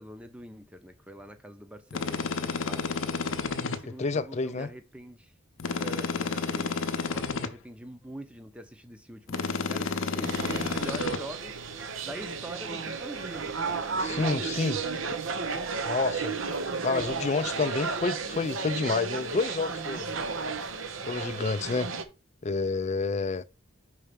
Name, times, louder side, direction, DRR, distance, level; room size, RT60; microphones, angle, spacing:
voice 1, 0.0-3.1 3.6-5.3 5.8-11.6 12.0-14.8, right 1 dB, 5° right, 0.7 m, -44 dB
sound 1, 1.9-3.8 5.6-7.5 9.3-11.2, left 4 dB, 70° left, 0.7 m, -30 dB
voice 2, 4.0-4.7 14.0-14.8 15.8-16.3 16.8-20.1 21.1-21.9 22.4-23.4, left 4 dB, 35° left, 0.4 m, -29 dB
sound 2, 10.2-22.0, right 4 dB, 70° right, 0.8 m, -33 dB
5.6 x 4.2 x 5.1 m
head